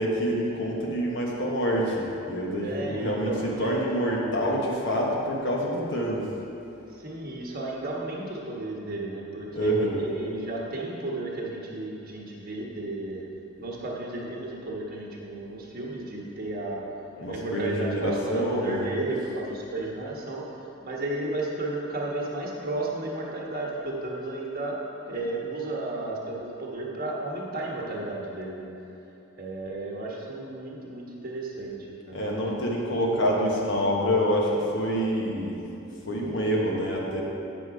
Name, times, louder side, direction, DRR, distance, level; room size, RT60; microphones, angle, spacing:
voice 1, 0.0-3.3 3.6-6.3 9.5-10.1 17.2-18.9 32.1-35.6 36.1-37.2, equal, 65° left, -3 dB, 1.4 m, -26 dB
voice 2, 2.6-3.8 6.9-13.2 13.6-16.8 17.3-20.4 20.8-28.7 29.4-32.3, right 2 dB, 45° right, -3 dB, 1.3 m, -33 dB
8.3 x 6.0 x 4.8 m, 2.8 s
head